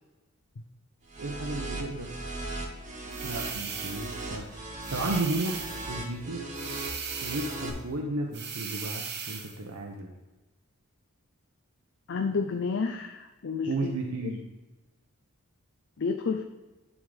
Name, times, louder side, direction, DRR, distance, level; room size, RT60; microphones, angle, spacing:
sound 1, 1.1-7.7, right 2 dB, 35° right, 1.3 m, -38 dB
voice 1, 1.2-2.1 3.2-4.4 4.9-6.4 7.2-10.1 13.7-14.4, right 2 dB, 80° right, 1 dB, 0.8 m, -33 dB
sound 2, 3.1-4.2 4.8-5.9 6.5-7.7 8.3-9.6, right 6 dB, 50° right, 1.0 m, -38 dB
voice 2, 12.1-13.9 16.0-16.4, left 5 dB, 60° left, 5 dB, 0.5 m, -30 dB
11.0 x 3.7 x 4.9 m, 1.1 s
head